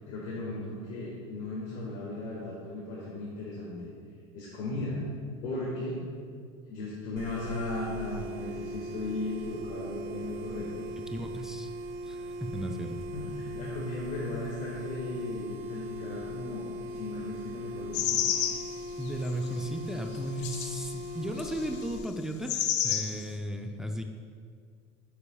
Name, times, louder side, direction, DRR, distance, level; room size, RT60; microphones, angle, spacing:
voice 1, 0.1-3.9 4.3-5.0 5.4-6.0 6.7-10.9 13.1-18.2, left 2 dB, 60° left, -5 dB, 1.9 m, -36 dB
sound 1, 7.2-22.0, equal, 80° right, 1.3 m, -40 dB
voice 2, 11.0-11.7 12.0-13.0 19.0-24.0, right 1 dB, 5° right, 4 dB, 0.6 m, -35 dB
sound 2, 17.9-18.7 19.2-19.3 20.4-20.8 21.4-21.7 22.5-23.2, left 9 dB, 80° left, 0.7 m, -29 dB
12.5 x 7.1 x 2.4 m, 2.1 s
supercardioid pair, 100°, 15 cm